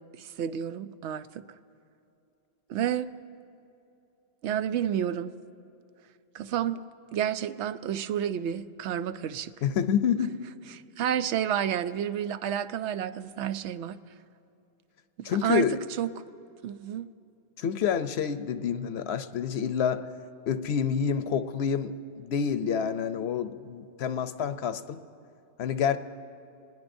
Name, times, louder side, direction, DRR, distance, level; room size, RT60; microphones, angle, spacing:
voice 1, 0.2-1.4 2.7-3.1 4.4-5.3 6.3-6.8 7.1-9.5 10.7-14.0 15.2-15.7 16.0-16.1 16.6-17.1, right 9 dB, 90° right, 12 dB, 0.9 m, -30 dB
voice 2, 9.6-10.3 15.2-15.8 17.6-20.0 20.5-21.9 22.2-25.0 25.6-26.0, left 7 dB, 75° left, 11 dB, 0.9 m, -28 dB
26.5 x 20.0 x 2.6 m, 2.7 s
omnidirectional pair, 1.1 m